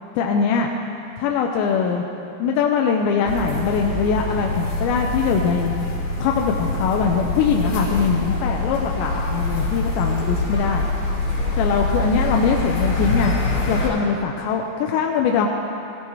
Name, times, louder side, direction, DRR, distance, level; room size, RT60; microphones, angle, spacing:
voice 1, 0.2-0.7 1.2-2.1 2.4-5.8 6.2-10.9 11.6-13.3 13.7-15.5, left 6 dB, 80° left, 1 dB, 2.8 m, -22 dB
sound 1, 3.3-13.9, left 2 dB, 55° left, 5.1 m, -24 dB
17.0 x 15.0 x 3.1 m, 2.6 s
omnidirectional pair, 5.4 m